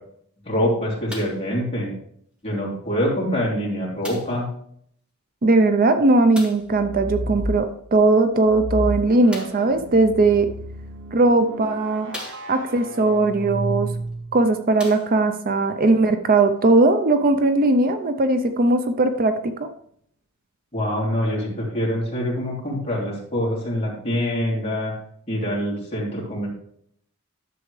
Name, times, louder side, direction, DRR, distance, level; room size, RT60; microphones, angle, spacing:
voice 1, 0.4-1.9 2.4-4.5 20.7-24.9 25.3-26.5, equal, 30° left, -4 dB, 2.8 m, -25 dB
sound 1, 1.1-1.5 2.4-2.5 4.0-4.5 6.3-6.7 9.3-9.7 10.7-10.8 11.4-11.5 12.1-12.8 14.1-14.2 14.7-15.4 16.3-16.4, left 1 dB, 5° right, 1.8 m, -38 dB
voice 2, 5.4-10.5 11.1-12.1 12.5-13.9 14.3-19.3 19.6-19.7, right 2 dB, 40° right, 8 dB, 0.5 m, -19 dB
sound 2, 6.7-7.6 8.5-14.5, right 1 dB, 55° right, 1.0 m, -31 dB
10.5 x 7.0 x 3.2 m, 0.66 s
head